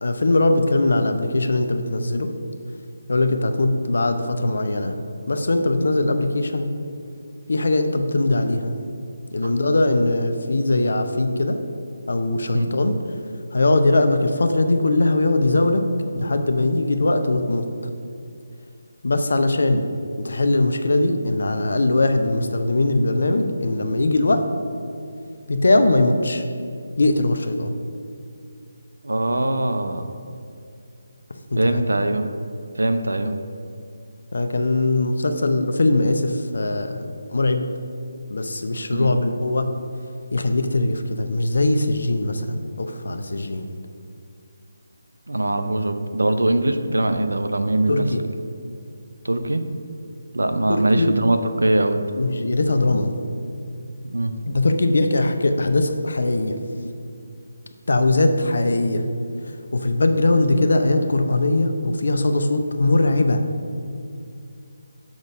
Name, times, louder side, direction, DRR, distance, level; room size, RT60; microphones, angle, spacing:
voice 1, 0.0-2.3 3.1-5.0 5.3-6.7 7.5-8.7 9.3-11.6 12.1-13.0 13.5-15.8 16.1-17.7 19.0-19.9 20.2-24.4 25.5-26.4 27.0-27.7 31.5-31.8 34.3-37.7 38.3-39.7 40.3-43.7 47.9-48.2 50.7-51.1 52.2-53.1 54.4-56.6 57.9-59.0 59.5-63.4, left 2 dB, 60° left, 7 dB, 0.7 m, -20 dB
voice 2, 29.0-30.1 31.6-32.3 32.8-33.4 38.9-39.1 45.3-48.1 49.2-49.6 50.3-52.0 54.0-54.3, right 1 dB, 75° right, 8 dB, 0.6 m, -22 dB
7.3 x 3.9 x 6.2 m, 2.5 s
figure-of-eight pair, 150°, 0 cm